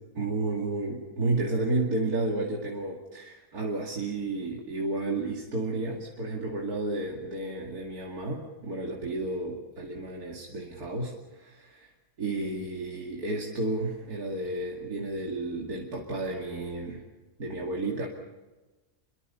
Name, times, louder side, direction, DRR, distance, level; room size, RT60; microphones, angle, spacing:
voice 1, 0.1-11.9 12.2-17.0 17.4-18.1, right 2 dB, 85° right, -1 dB, 2.9 m, -32 dB
27.5 x 23.0 x 5.6 m, 1.1 s
omnidirectional pair, 1.6 m